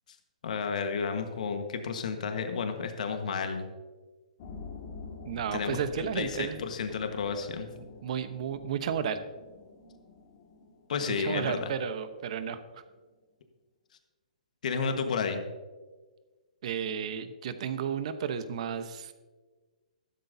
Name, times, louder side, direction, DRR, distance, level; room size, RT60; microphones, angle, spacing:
voice 1, 0.4-3.7 5.5-5.8 6.1-7.7 10.9-11.7 14.6-15.4, left 5 dB, 65° left, 6 dB, 1.4 m, -31 dB
sound 1, 4.4-12.9, left 4 dB, 45° left, 1.9 m, -48 dB
voice 2, 5.2-6.6 7.8-9.2 11.0-12.8 16.6-19.1, right 8 dB, 55° right, 11 dB, 1.0 m, -33 dB
13.5 x 12.5 x 2.8 m, 1.3 s
hypercardioid pair, 145°, 4 cm